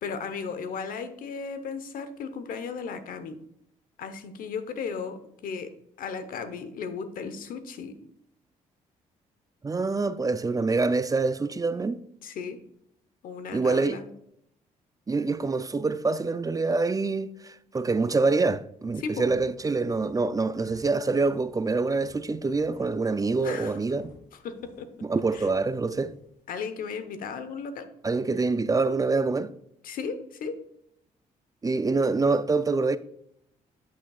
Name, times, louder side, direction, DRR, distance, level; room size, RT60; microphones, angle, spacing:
voice 1, 0.0-3.4 4.0-5.7 6.0-7.9 12.2-12.6 13.2-14.1 19.0-19.3 23.4-23.8 24.4-24.9 25.3-25.5 26.5-27.9 29.8-30.6, left 5 dB, 75° left, 0.9 m, -35 dB
voice 2, 9.6-12.0 13.5-14.0 15.1-24.1 25.0-26.1 28.0-29.5 31.6-33.0, right 3 dB, 25° right, 0.5 m, -25 dB
sound 1, 18.8-26.4, left 2 dB, 90° left, 2.2 m, -54 dB
8.6 x 8.3 x 2.4 m
supercardioid pair, 65°, 15 cm